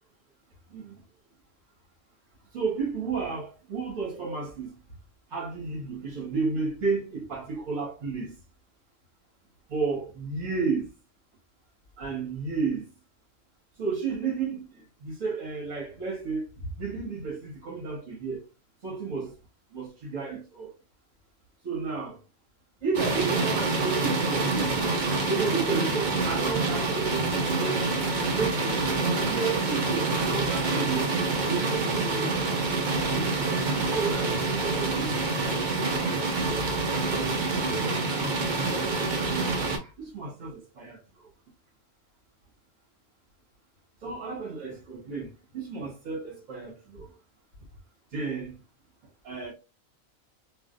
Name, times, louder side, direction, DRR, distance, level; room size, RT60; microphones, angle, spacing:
voice 1, 2.5-4.7 5.3-8.3 9.7-10.9 12.0-12.9 13.8-16.5 16.8-18.4 18.8-19.3 19.7-20.7 21.6-22.2 22.8-24.9 25.3-27.9 28.3-28.8 29.0-31.1 31.5-32.5 33.1-33.6 33.9-36.0 36.4-36.8 37.2-38.3 38.7-39.5 39.8-41.3 44.0-47.1 48.1-48.6 49.2-49.5, right 4 dB, 65° right, 1.5 m, -32 dB
sound 1, 22.9-39.8, right 3 dB, 45° right, 0.6 m, -27 dB
3.3 x 2.4 x 2.4 m
omnidirectional pair, 1.5 m